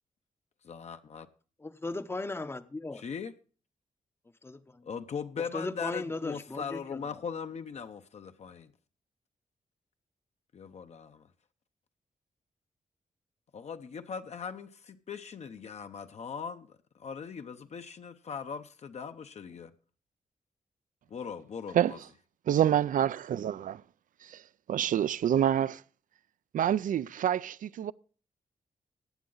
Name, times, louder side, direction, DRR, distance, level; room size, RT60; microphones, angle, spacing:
voice 1, 0.6-1.3 2.9-3.3 4.8-8.7 10.5-11.3 13.5-19.7 21.1-22.0, left 6 dB, 50° left, 0.7 m, -40 dB
voice 2, 1.6-3.0 4.4-4.6 5.5-6.8, left 2 dB, 15° left, 0.7 m, -36 dB
voice 3, 22.5-23.8 24.2-24.4 24.7-25.8 26.5-27.9, right 10 dB, 70° right, 0.4 m, -27 dB
15.0 x 9.5 x 3.9 m
wide cardioid pair, 160°, 14 cm